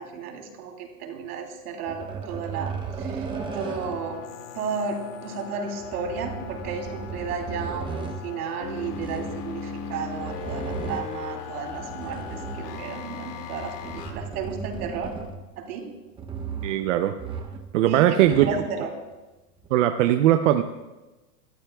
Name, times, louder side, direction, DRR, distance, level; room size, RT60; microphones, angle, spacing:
voice 1, 0.0-4.2 4.5-15.1 15.5-15.9 17.8-18.9, right 5 dB, 70° right, 2 dB, 3.3 m, -33 dB
sound 1, 1.9-4.2 5.8-8.2 8.8-9.4 10.2-11.2 11.7-12.9 13.5-15.6 16.2-16.9 17.2-17.7 18.0-18.7 19.6-19.7, right 5 dB, 10° right, 0.7 m, -36 dB
sound 2, 3.3-14.1, left 6 dB, 75° left, 2.3 m, -38 dB
voice 2, 16.6-17.1 17.7-18.5 19.7-20.6, right 12 dB, 50° right, 8 dB, 0.6 m, -19 dB
24.0 x 14.0 x 2.3 m, 1.1 s
supercardioid pair, 145°, 48 cm